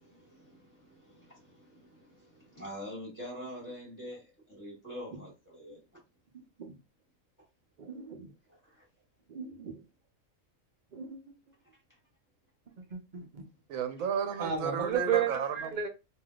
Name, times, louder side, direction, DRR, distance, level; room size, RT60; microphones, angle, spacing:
voice 1, 0.0-5.8 8.5-8.6, equal, 15° left, 1.7 m, -45 dB
voice 2, 6.3-6.8 7.8-8.3 9.3-9.8 10.9-11.2 12.9-13.4 14.4-15.3 15.7-15.9, right 8 dB, 45° right, 0.7 m, -33 dB
voice 3, 13.7-15.7, right 7 dB, 75° right, 1.0 m, -32 dB
3.4 x 2.7 x 2.3 m
omnidirectional pair, 1.4 m